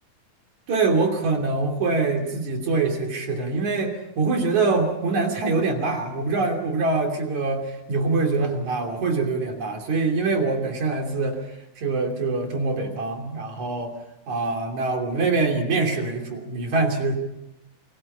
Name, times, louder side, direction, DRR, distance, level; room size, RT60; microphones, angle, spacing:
voice 1, 0.7-13.9 14.3-17.1, right 3 dB, 55° right, 3 dB, 4.2 m, -24 dB
29.5 x 23.5 x 5.6 m, 0.89 s
omnidirectional pair, 4.3 m